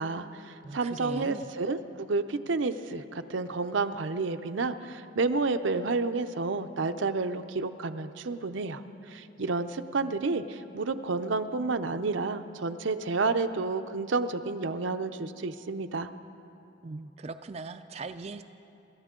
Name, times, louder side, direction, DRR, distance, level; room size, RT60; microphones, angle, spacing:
voice 1, 0.0-8.8 9.1-16.1, right 3 dB, 75° right, 9 dB, 0.6 m, -30 dB
voice 2, 0.6-1.5 16.8-18.4, right 3 dB, 35° right, 8 dB, 0.4 m, -40 dB
27.0 x 13.0 x 3.7 m, 2.8 s
head